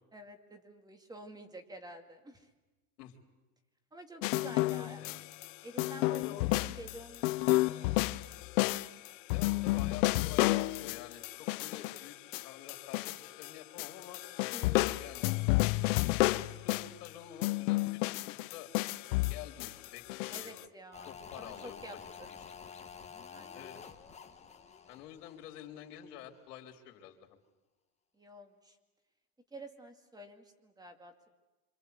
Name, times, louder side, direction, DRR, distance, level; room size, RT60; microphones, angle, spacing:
voice 1, 0.1-2.5 3.9-5.0 5.6-7.6 14.5-14.9 20.3-22.3 23.3-23.7 28.1-28.8 29.5-31.3, right 1 dB, 10° right, 6 dB, 2.3 m, -50 dB
sound 1, 4.2-5.5 5.8-13.5 13.8-17.1 17.4-20.6, left 20 dB, 55° left, 0.9 m, -31 dB
voice 2, 4.6-5.2 6.1-6.5 9.3-12.2 12.4-15.3 16.3-18.7 19.3-20.0 20.4-20.7 21.1-22.5 23.5-23.8 24.9-27.4, left 11 dB, 80° left, 2 dB, 3.9 m, -49 dB
sound 2, 20.9-26.1 26.3-26.4, left 6 dB, 15° left, 1.5 m, -50 dB
27.0 x 26.5 x 8.2 m, 1.1 s
supercardioid pair, 150°, 46 cm